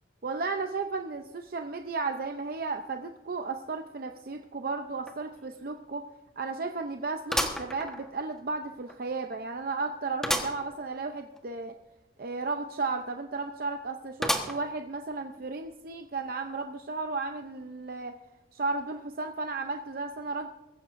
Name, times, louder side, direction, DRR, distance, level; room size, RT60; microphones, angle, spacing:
voice 1, 0.2-6.1 6.4-11.8 12.2-18.2 18.5-20.5, right 3 dB, 55° right, 6 dB, 0.6 m, -34 dB
sound 1, 5.1-5.2 5.6-5.7 7.3-8.4 8.9-9.0 10.2-10.6 11.1-11.2 11.3-11.4 14.2-14.8 15.4-15.5 16.5-16.6, equal, 5° left, 1.2 m, -30 dB
22.5 x 14.5 x 2.6 m, 1.1 s
head